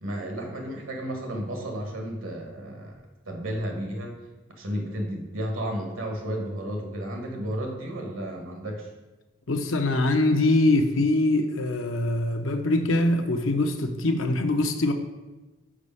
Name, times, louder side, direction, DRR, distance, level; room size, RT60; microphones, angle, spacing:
voice 1, 0.0-2.9 3.2-4.1 4.6-8.9, equal, 90° right, 2 dB, 1.4 m, -32 dB
voice 2, 9.5-14.9, left 2 dB, 80° left, 6 dB, 0.7 m, -23 dB
5.2 x 4.9 x 5.4 m, 1.1 s
head